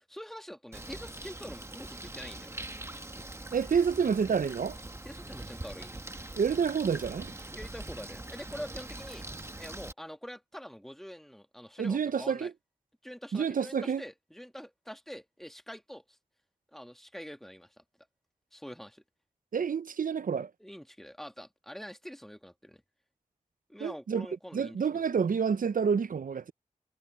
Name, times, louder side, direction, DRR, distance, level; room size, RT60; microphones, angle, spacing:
voice 1, 0.0-2.5 5.0-6.0 7.5-9.3 9.6-12.5 13.0-16.0 16.7-17.8 18.5-19.0 20.6-22.8 23.7-25.0, equal, ahead, 1.9 m, -45 dB
Bird, 0.7-9.9, right 1 dB, 20° right, 1.2 m, -43 dB
voice 2, 3.5-4.8 6.4-7.3 11.8-12.5 13.3-14.0 19.5-20.5 23.8-24.3 24.5-26.5, right 6 dB, 80° right, 0.5 m, -28 dB
wide cardioid pair, 95°, 14 cm